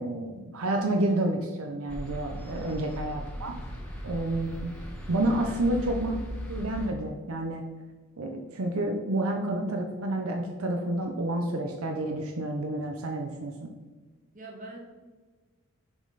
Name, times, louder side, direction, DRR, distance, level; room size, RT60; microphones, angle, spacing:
voice 1, 0.0-3.5 4.0-4.7 5.1-6.2 6.5-7.6 8.2-13.7, right 1 dB, 80° right, 3 dB, 0.7 m, -29 dB
sound 1, 1.9-6.9, equal, 5° left, 1.2 m, -38 dB
voice 2, 2.5-3.0 5.4-5.6 14.3-14.8, right 2 dB, 35° right, -2 dB, 1.7 m, -45 dB
7.0 x 5.2 x 4.0 m, 1.3 s
head